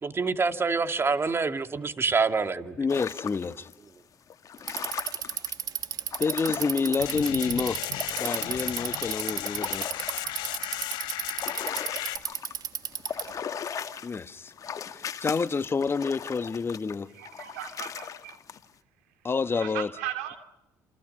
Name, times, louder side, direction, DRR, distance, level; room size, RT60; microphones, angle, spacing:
voice 1, 0.0-2.8, right 4 dB, 30° right, 2.4 m, -26 dB
voice 2, 2.8-3.7 6.2-7.8 8.2-9.9 14.0-14.5 14.9-17.1 19.2-19.9, left 5 dB, 30° left, 1.5 m, -28 dB
sound 1, 2.9-3.7 4.3-7.4 7.6-12.6 12.9-18.7, left 7 dB, 45° left, 1.9 m, -38 dB
Bicycle, 4.6-13.4, right 9 dB, 55° right, 1.7 m, -33 dB
sound 2, 7.0-12.2, left 14 dB, 70° left, 2.2 m, -35 dB
voice 3, 17.2-18.4 19.5-20.4, right 12 dB, 90° right, 3.5 m, -37 dB
29.5 x 28.0 x 5.5 m
supercardioid pair, 70°, 8 cm